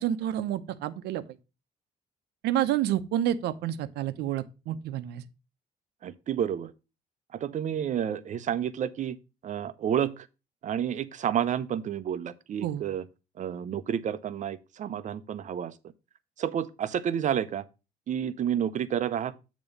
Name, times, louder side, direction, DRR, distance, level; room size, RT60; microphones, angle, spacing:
voice 1, 0.0-1.2 2.4-5.2 12.6-12.8, right 11 dB, 80° right, 0.8 m, -29 dB
voice 2, 6.0-6.7 7.3-9.2 9.4-10.3 10.6-13.0 13.4-15.7 16.4-17.6 18.1-19.3, right 9 dB, 45° right, 0.6 m, -30 dB
8.8 x 3.0 x 6.5 m
cardioid pair, 110°, 17 cm